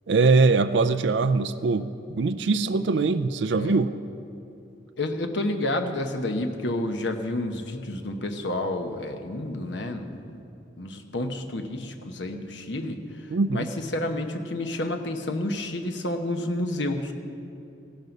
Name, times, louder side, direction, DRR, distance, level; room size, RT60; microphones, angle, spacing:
voice 1, 0.1-3.9 13.3-13.7, right 4 dB, 65° right, 10 dB, 0.4 m, -22 dB
voice 2, 5.0-10.4 10.8-17.1, left 1 dB, 65° left, 5 dB, 1.0 m, -30 dB
16.0 x 12.0 x 5.3 m, 2.7 s
head